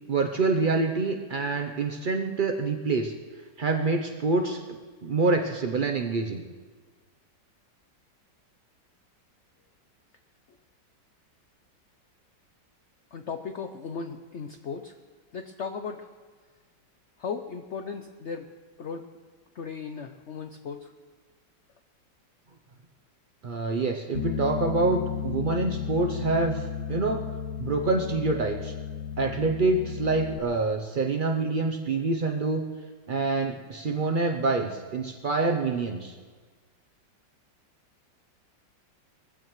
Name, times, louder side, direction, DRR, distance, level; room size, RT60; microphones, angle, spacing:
voice 1, 0.1-3.1 3.6-6.4 23.4-27.3 27.6-28.7 29.2-32.6 33.1-36.2, right 3 dB, 75° right, 3 dB, 0.4 m, -26 dB
voice 2, 13.1-15.0 15.3-16.1 17.2-18.5 18.8-19.0 19.5-20.9, left 5 dB, 90° left, 7 dB, 0.6 m, -36 dB
Bass guitar, 24.1-30.4, left 8 dB, 70° left, 1.1 m, -34 dB
22.0 x 15.5 x 3.1 m, 1.5 s
omnidirectional pair, 2.0 m